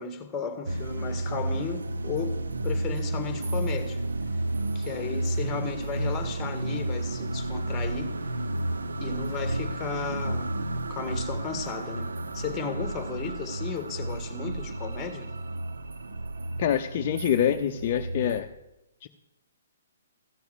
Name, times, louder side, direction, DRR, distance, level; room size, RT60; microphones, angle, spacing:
voice 1, 0.0-2.4 2.6-4.0 4.7-8.1 9.0-10.6 10.9-15.3, left 6 dB, 15° left, 1.8 m, -34 dB
sound 1, 0.6-18.4, right 2 dB, 80° right, 0.9 m, -32 dB
voice 2, 16.6-18.5 19.0-19.1, left 10 dB, 45° left, 0.6 m, -25 dB
14.5 x 7.1 x 8.1 m
hypercardioid pair, 135°, 0 cm